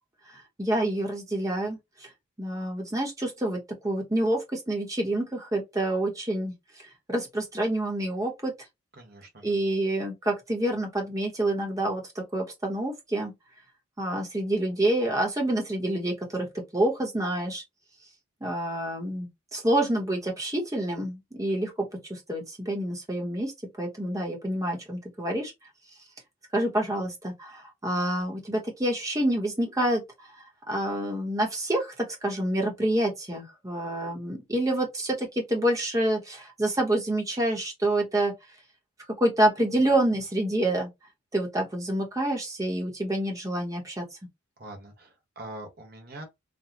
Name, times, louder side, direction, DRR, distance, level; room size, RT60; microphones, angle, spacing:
voice 1, 0.6-1.8 2.4-6.5 7.1-8.5 9.4-13.3 14.0-16.5 16.7-17.6 18.4-23.5 23.8-25.5 26.5-30.0 30.7-38.3 39.2-40.9 41.3-44.1, right 1 dB, 15° right, 0.9 m, -27 dB
voice 2, 9.0-9.5 44.6-46.2, right 2 dB, 45° right, 1.2 m, -43 dB
4.1 x 2.2 x 2.9 m
head